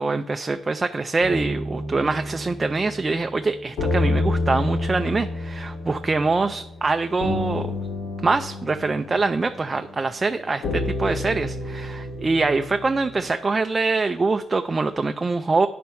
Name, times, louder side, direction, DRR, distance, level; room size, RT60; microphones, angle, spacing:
voice 1, 0.0-7.8 8.2-15.7, right 3 dB, 25° right, 8 dB, 0.4 m, -24 dB
sound 1, 1.2-13.3, left 2 dB, 75° left, 2.3 m, -29 dB
9.0 x 4.3 x 5.7 m, 0.77 s
cardioid pair, 90°, 0 cm